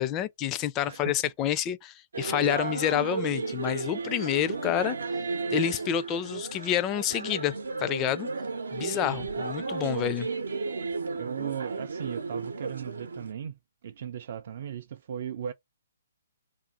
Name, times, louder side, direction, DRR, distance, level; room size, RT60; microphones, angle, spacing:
voice 1, 0.0-5.0 5.5-7.5 7.8-8.3 8.7-10.3, left 11 dB, 25° left, 0.4 m, -28 dB
voice 2, 0.8-1.3 8.9-9.3 11.2-13.5 13.8-15.5, right 8 dB, 55° right, 0.4 m, -37 dB
sound 1, 2.1-13.3, right 4 dB, 85° right, 0.7 m, -33 dB
2.6 x 2.5 x 3.7 m
hypercardioid pair, 140°, 0 cm